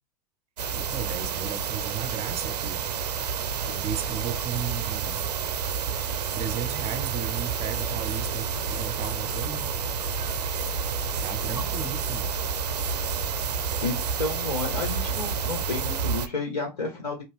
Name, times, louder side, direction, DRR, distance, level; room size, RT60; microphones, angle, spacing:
sound 1, 0.6-16.3, right 6 dB, 90° right, 0.4 m, -29 dB
voice 1, 0.7-2.8 3.5-5.3 6.3-9.7 11.2-12.3, right 8 dB, 30° right, 0.6 m, -35 dB
voice 2, 11.4-11.9 13.8-17.2, left 3 dB, 85° left, 1.3 m, -32 dB
2.8 x 2.5 x 3.3 m
hypercardioid pair, 105°, 20 cm